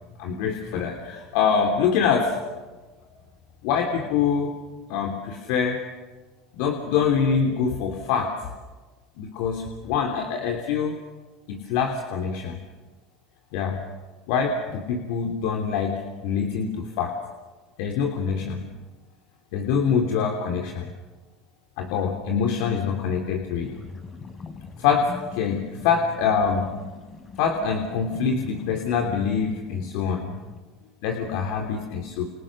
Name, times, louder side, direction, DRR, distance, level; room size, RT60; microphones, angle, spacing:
voice 1, 0.2-2.4 3.6-4.5 4.9-5.8 6.5-8.3 9.2-11.0 11.5-12.6 13.5-13.8 14.3-17.2 17.8-18.6 19.5-20.9 21.8-23.7 24.8-26.7 27.4-30.3 31.0-32.3, left 6 dB, 70° left, 3 dB, 3.2 m, -25 dB
sound 1, 23.6-30.6, left 4 dB, 30° left, 4.8 m, -42 dB
29.5 x 28.5 x 6.5 m, 1.3 s
supercardioid pair, 110°, 0 cm